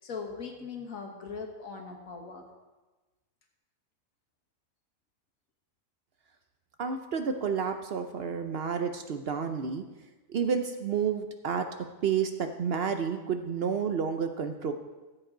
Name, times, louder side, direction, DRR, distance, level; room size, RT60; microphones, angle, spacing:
voice 1, 0.0-2.5, left 5 dB, 80° left, 2 dB, 1.9 m, -40 dB
voice 2, 6.8-9.8 10.3-11.7 12.0-14.7, right 6 dB, 55° right, 7 dB, 0.8 m, -30 dB
14.5 x 7.9 x 3.9 m, 1.2 s
omnidirectional pair, 1.4 m